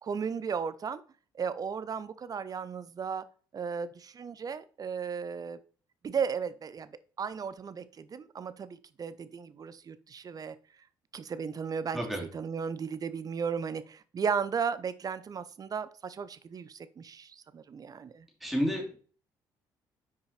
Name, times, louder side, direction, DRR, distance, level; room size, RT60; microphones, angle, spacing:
voice 1, 0.0-1.0 1.3-3.2 3.5-5.6 6.0-10.6 11.1-18.3, right 6 dB, 40° right, 0.7 m, -35 dB
voice 2, 18.4-19.0, equal, ahead, 3.0 m, -30 dB
6.0 x 4.8 x 4.2 m
supercardioid pair, 65°, 10 cm